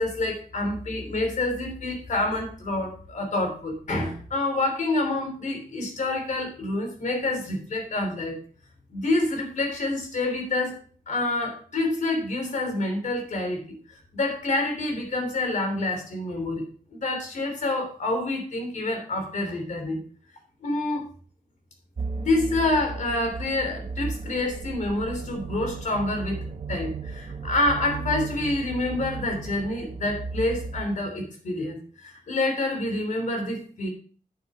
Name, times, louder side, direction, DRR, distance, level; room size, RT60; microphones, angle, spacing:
voice 1, 0.0-8.4 8.9-10.8 11.1-16.6 16.9-20.0 20.6-21.1 22.2-33.9, left 2 dB, 65° left, 4 dB, 3.1 m, -27 dB
sound 1, 22.0-30.9, right 4 dB, 40° right, 0.7 m, -35 dB
8.9 x 7.4 x 4.2 m, 0.42 s
wide cardioid pair, 130°, 14 cm